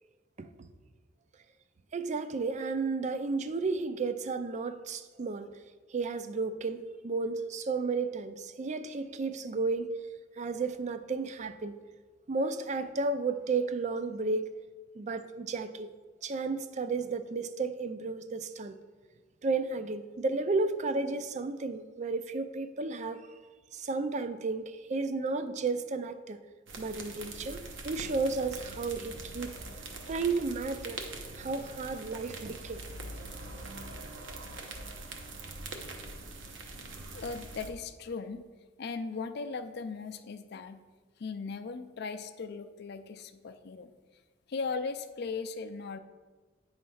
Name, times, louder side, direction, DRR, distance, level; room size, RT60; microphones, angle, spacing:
voice 1, 1.9-5.5 5.9-9.9 10.4-11.8 12.3-14.5 15.0-15.9 16.2-18.8 19.4-23.2 23.7-26.4 26.8-29.5 30.1-31.0 31.4-32.8, right 3 dB, 40° right, 11 dB, 0.4 m, -33 dB
sound 1, 26.7-37.7, right 2 dB, 70° right, 0.9 m, -43 dB
voice 2, 37.1-38.4 38.8-40.8 41.2-43.9 44.5-46.0, left 4 dB, 55° left, 10 dB, 0.4 m, -38 dB
9.1 x 3.2 x 5.5 m, 1.4 s
head